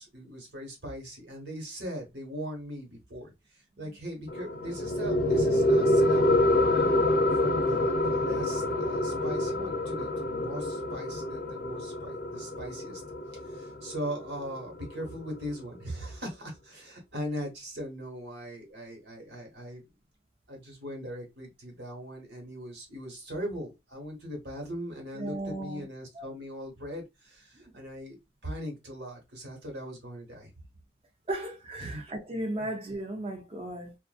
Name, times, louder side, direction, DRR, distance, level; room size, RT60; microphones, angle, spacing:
voice 1, 0.0-3.3 3.8-13.0 13.4-19.8 20.5-28.2 28.4-30.5 31.8-32.0 32.6-32.7, equal, 70° right, 1.2 m, -39 dB
sound 1, 4.3-15.3, left 1 dB, 50° left, 0.4 m, -27 dB
voice 2, 25.1-25.8 26.1-26.3 27.5-27.6 31.3-33.9, right 1 dB, 30° right, 0.5 m, -35 dB
2.6 x 2.4 x 2.3 m
head